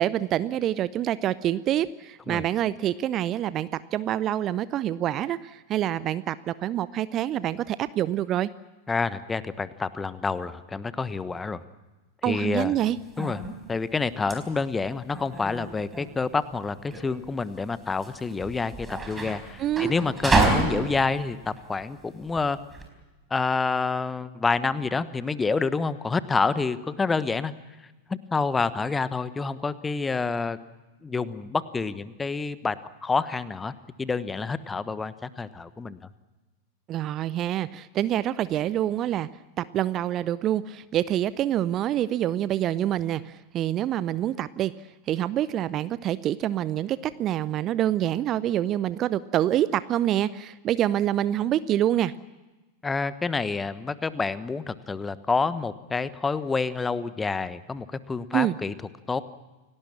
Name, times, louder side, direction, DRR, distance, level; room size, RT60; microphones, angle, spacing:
voice 1, 0.0-8.5 12.2-13.0 19.6-19.9 36.9-39.3 39.6-44.7 45.1-52.1 58.3-58.6, right 12 dB, 30° right, 17 dB, 0.7 m, -26 dB
voice 2, 8.9-11.6 12.2-12.8 13.2-13.4 13.7-22.6 23.3-27.5 28.3-30.6 31.0-32.7 33.0-33.7 34.0-36.0 52.8-58.7 59.1-59.2, left 4 dB, 15° left, 15 dB, 1.2 m, -28 dB
sound 1, 12.8-22.9, right 2 dB, 10° right, 4.5 m, -29 dB
29.0 x 18.0 x 7.4 m, 1.2 s
figure-of-eight pair, 90°, 0 cm